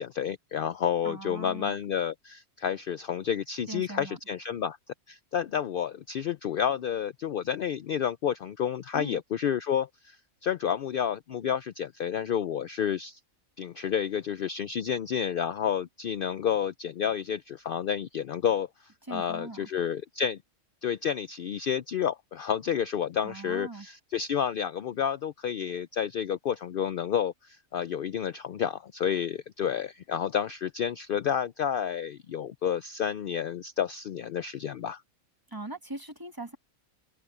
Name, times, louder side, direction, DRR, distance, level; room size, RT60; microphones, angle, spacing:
voice 1, 0.0-4.8 5.1-10.2 10.4-13.2 13.6-20.4 20.8-35.0, left 8 dB, 75° left, 0.5 m, -30 dB
voice 2, 1.0-1.8 3.7-4.2 8.9-9.2 19.1-19.7 23.2-23.9 35.5-36.6, right 2 dB, 15° right, 1.1 m, -40 dB
omnidirectional pair, 1.5 m